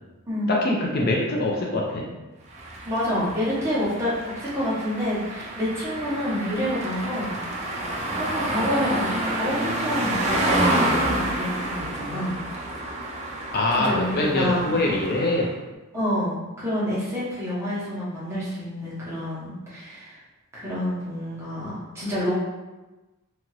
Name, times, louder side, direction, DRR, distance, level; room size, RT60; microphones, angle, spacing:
voice 1, 0.5-2.1 13.5-15.5, left 2 dB, 45° left, -2 dB, 0.4 m, -23 dB
sound 1, 2.5-15.5, right 1 dB, 30° right, 0.4 m, -29 dB
voice 2, 2.8-7.4 7.8-12.4 13.8-14.7 15.9-20.2 20.5-22.3, equal, 15° right, -9 dB, 0.9 m, -28 dB
2.8 x 2.4 x 3.0 m, 1.1 s
head